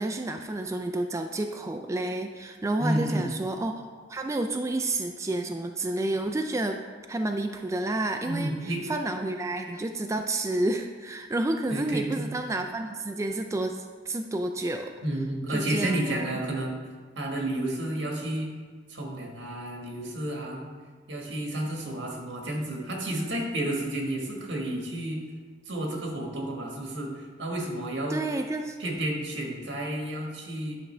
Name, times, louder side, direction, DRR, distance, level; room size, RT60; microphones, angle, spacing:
voice 1, 0.0-3.8 4.1-6.8 7.1-8.5 8.9-14.9 15.5-16.4 28.1-28.8, right 2 dB, 15° right, 5 dB, 0.3 m, -30 dB
voice 2, 2.8-3.3 8.2-8.8 11.7-12.3 15.0-16.8 17.1-18.5 18.9-20.7 21.1-25.2 25.6-28.3 28.8-30.8, right 1 dB, 80° right, 0 dB, 1.6 m, -31 dB
10.5 x 6.1 x 3.3 m, 1.5 s
head